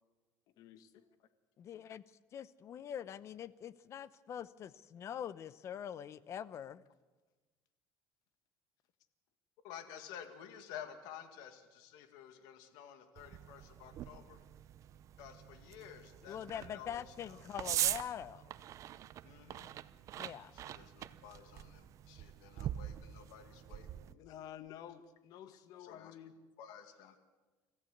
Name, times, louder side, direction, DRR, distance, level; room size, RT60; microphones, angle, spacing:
voice 1, 0.6-1.1 24.1-26.3, left 10 dB, 65° left, 12 dB, 1.5 m, -51 dB
voice 2, 1.6-2.0 2.3-6.8 16.3-18.5 20.2-20.5, left 9 dB, 40° left, 18 dB, 0.8 m, -44 dB
voice 3, 9.6-14.4 15.2-17.4 19.2-19.7 20.4-24.0 25.5-26.2 26.6-27.2, left 9 dB, 85° left, 8 dB, 2.2 m, -52 dB
sound 1, 13.2-24.1, right 12 dB, 50° right, 0.7 m, -43 dB
26.0 x 14.5 x 8.0 m, 1.2 s
cardioid pair, 130°, 7 cm